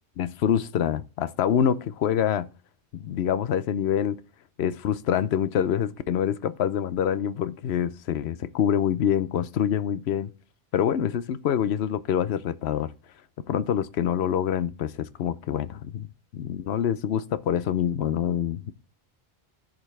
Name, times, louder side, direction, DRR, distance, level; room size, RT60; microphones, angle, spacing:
voice 1, 0.2-2.5 2.9-4.2 4.6-10.3 10.7-12.9 13.5-16.1 16.3-18.7, left 9 dB, 85° left, 0.9 m, -26 dB
14.5 x 5.3 x 3.3 m
omnidirectional pair, 1.1 m